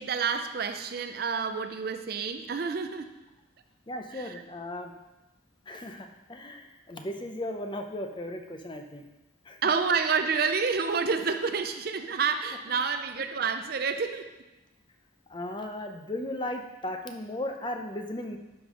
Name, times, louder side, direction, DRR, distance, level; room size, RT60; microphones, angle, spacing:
voice 1, 0.0-3.1 4.1-4.4 9.6-14.3, right 5 dB, 50° right, 8 dB, 0.5 m, -29 dB
voice 2, 3.9-4.9 5.7-9.1 9.4-9.6 15.3-18.4, left 1 dB, 25° left, 5 dB, 0.6 m, -36 dB
11.5 x 5.1 x 3.8 m, 1.0 s
head